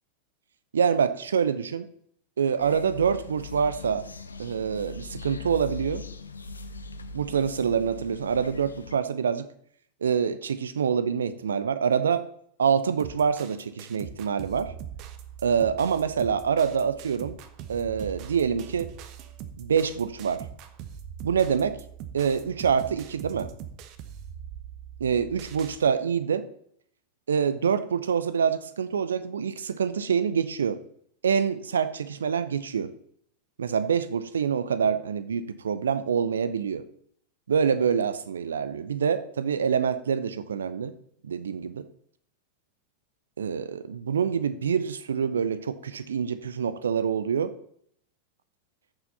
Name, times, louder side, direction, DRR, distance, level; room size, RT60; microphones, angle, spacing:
voice 1, 0.7-1.9 2.4-4.0 4.4-6.0 7.1-9.5 10.0-12.2 12.6-14.7 15.4-17.4 17.7-18.9 19.6-20.4 21.2-21.8 22.1-23.5 25.0-26.4 27.3-30.8 31.2-32.9 33.6-36.8 37.5-40.9 41.2-41.9 43.4-47.5, right 7 dB, 70° right, 13 dB, 0.7 m, -26 dB
sound 1, 2.6-8.9, left 4 dB, 75° left, 0.7 m, -40 dB
sound 2, 13.0-25.8, right 9 dB, 40° right, 0.9 m, -42 dB
14.0 x 6.8 x 4.1 m, 0.67 s
figure-of-eight pair, 90°, 0 cm